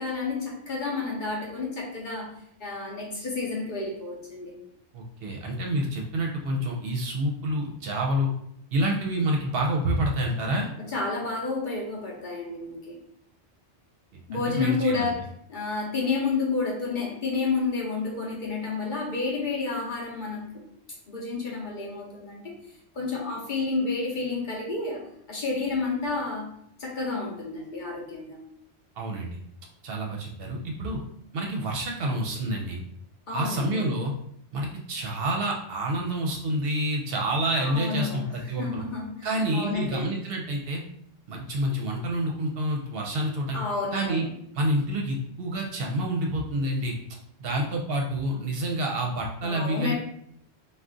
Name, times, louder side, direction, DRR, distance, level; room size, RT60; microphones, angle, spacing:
voice 1, 0.0-2.3 2.6-4.6 10.8-13.0 14.3-20.4 21.1-22.5 22.9-26.5 26.8-28.4 33.3-33.8 37.6-40.1 43.5-44.3 49.4-49.9, left 4 dB, 55° left, -2 dB, 0.7 m, -30 dB
voice 2, 4.9-8.3 8.7-10.7 14.3-15.1 29.0-29.3 29.8-31.0 31.3-32.8 33.3-34.1 34.5-38.8 39.2-40.8 41.3-43.6 43.9-44.3 44.5-47.0 47.4-49.9, right 1 dB, 65° right, 0 dB, 0.7 m, -28 dB
2.4 x 2.3 x 3.6 m, 0.70 s
omnidirectional pair, 1.1 m